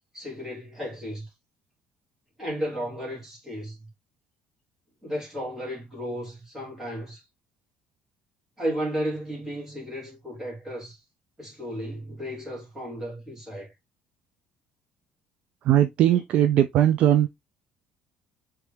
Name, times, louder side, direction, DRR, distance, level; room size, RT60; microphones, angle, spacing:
voice 1, 0.1-1.3 2.4-3.8 5.0-7.2 8.6-11.0 11.4-13.7 16.1-16.2, equal, 10° right, 2.3 m, -34 dB
voice 2, 15.6-17.3, right 11 dB, 50° right, 0.4 m, -19 dB
4.5 x 3.3 x 3.4 m
cardioid pair, 170°, 3 cm